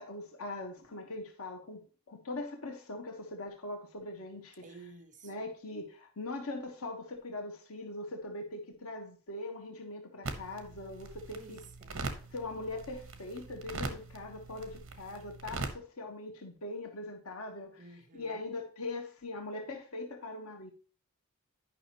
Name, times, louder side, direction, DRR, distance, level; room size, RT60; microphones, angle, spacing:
voice 1, 0.0-4.7 5.2-11.6 12.3-17.9 18.1-20.7, left 2 dB, 85° left, 1.4 m, -41 dB
voice 2, 4.6-5.3 11.3-12.2 17.8-18.4, right 3 dB, 35° right, 1.1 m, -53 dB
sound 1, 10.2-15.7, right 3 dB, 65° right, 1.2 m, -42 dB
10.0 x 5.6 x 3.0 m
head